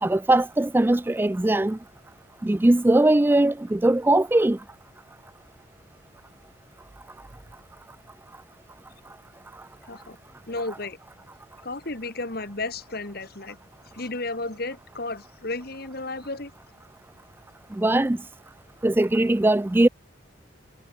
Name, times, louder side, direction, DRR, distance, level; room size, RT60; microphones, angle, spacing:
voice 1, 0.0-1.8 2.4-4.6 17.7-18.2 18.8-19.9, right 1 dB, 10° right, 0.3 m, -20 dB
voice 2, 10.5-11.0 11.6-13.6 13.9-16.5, left 2 dB, 50° left, 2.3 m, -33 dB
head